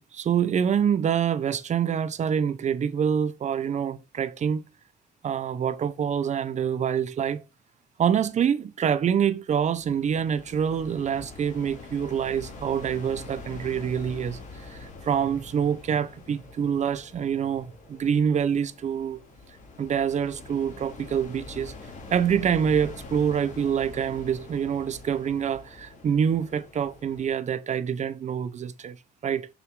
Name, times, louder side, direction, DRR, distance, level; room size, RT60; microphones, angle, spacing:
voice 1, 0.0-4.6 5.2-7.4 8.0-19.2 19.8-21.7 22.1-29.0 29.2-29.5, right 8 dB, 45° right, 1.1 m, -26 dB
sound 1, 9.5-27.3, left 3 dB, 45° left, 3.3 m, -44 dB
7.4 x 6.6 x 3.9 m
cardioid pair, 110°, 17 cm